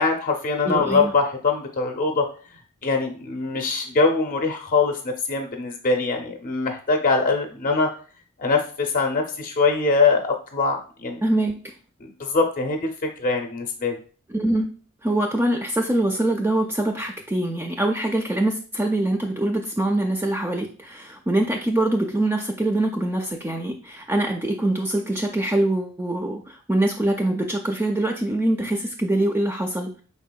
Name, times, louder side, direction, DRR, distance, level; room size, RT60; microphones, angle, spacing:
voice 1, 0.0-2.2 2.8-7.9 8.4-11.2 12.0-14.0, left 4 dB, 40° left, 3 dB, 0.6 m, -23 dB
voice 2, 0.6-1.1 11.2-11.7 14.3-14.7 15.0-30.0, right 1 dB, 10° right, 1 dB, 0.3 m, -24 dB
4.8 x 3.6 x 2.2 m, 0.40 s
head